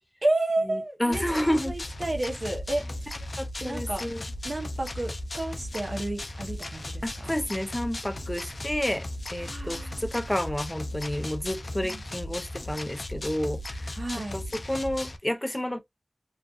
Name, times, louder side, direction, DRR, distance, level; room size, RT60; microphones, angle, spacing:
voice 1, 0.2-2.9 3.6-4.0 4.4-7.3 9.4-10.1 11.8-12.0 13.9-14.4, right 2 dB, 75° right, 0.8 m, -31 dB
voice 2, 0.7-1.7 3.4-4.2 7.0-14.0 14.3-14.4 14.7-15.8, left 1 dB, 20° left, 0.5 m, -30 dB
sound 1, 1.1-15.2, left 1 dB, 85° left, 0.4 m, -36 dB
2.6 x 2.4 x 2.3 m
wide cardioid pair, 45°, 0 cm